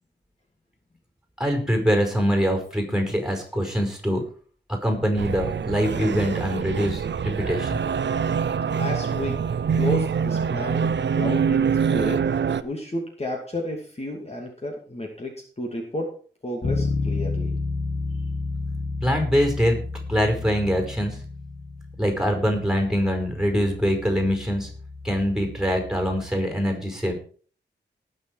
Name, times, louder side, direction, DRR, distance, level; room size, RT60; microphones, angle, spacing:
voice 1, 1.4-4.2 4.7-7.8 19.0-19.8 20.1-21.2 22.0-24.7 25.0-27.1, equal, ahead, 3 dB, 4.9 m, -23 dB
sound 1, 5.2-12.6, right 6 dB, 80° right, 0.7 m, -24 dB
voice 2, 8.8-9.4 9.7-12.2 12.6-16.2 16.4-17.5, left 1 dB, 35° left, 0 dB, 2.6 m, -31 dB
Bass guitar, 16.6-26.4, left 3 dB, 60° left, 3.0 m, -32 dB
19.0 x 6.8 x 4.7 m, 0.43 s
wide cardioid pair, 85°, 18 cm